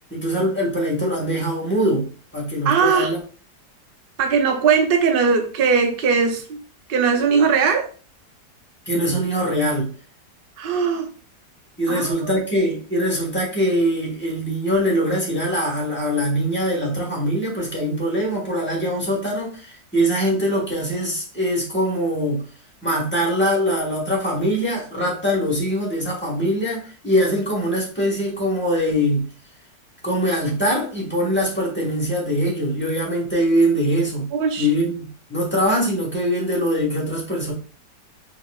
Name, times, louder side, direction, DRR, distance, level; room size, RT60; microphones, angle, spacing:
voice 1, 0.1-3.2 8.9-9.9 11.8-22.4 22.8-29.3 30.0-34.3 34.6-37.5, equal, 10° left, -3 dB, 1.0 m, -22 dB
voice 2, 2.6-3.1 4.2-6.6 6.9-7.9 10.6-11.1 11.9-12.1 34.4-34.7, right 5 dB, 70° right, 3 dB, 0.5 m, -19 dB
4.1 x 2.8 x 2.3 m, 0.39 s
omnidirectional pair, 1.8 m